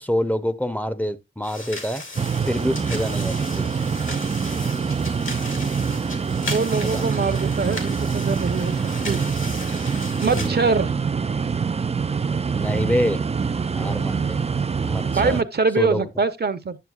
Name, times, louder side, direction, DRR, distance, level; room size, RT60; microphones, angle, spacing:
voice 1, 0.0-2.0 2.5-3.7 6.8-7.0 10.3-10.5 12.5-13.2 13.7-14.4 14.8-15.4 15.8-16.1, equal, 10° left, 0.6 m, -26 dB
sound 1, 1.4-10.5, left 3 dB, 75° left, 2.4 m, -36 dB
sound 2, 2.2-15.4, right 5 dB, 30° right, 0.4 m, -25 dB
voice 2, 6.5-8.8 9.1-9.2 10.2-10.9 15.1-16.8, right 4 dB, 55° right, 0.7 m, -23 dB
9.4 x 7.0 x 2.3 m
wide cardioid pair, 70°, 20 cm